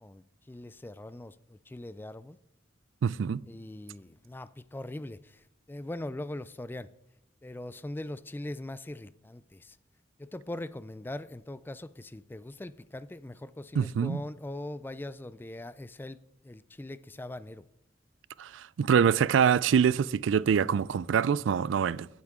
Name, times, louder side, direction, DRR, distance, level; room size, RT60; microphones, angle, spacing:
voice 1, 0.0-2.4 3.4-6.9 7.4-9.8 10.2-16.2 16.4-17.6, left 1 dB, 10° left, 0.3 m, -41 dB
voice 2, 3.0-3.4 13.8-14.2 18.4-22.1, right 7 dB, 90° right, 0.3 m, -25 dB
17.0 x 8.3 x 3.7 m
head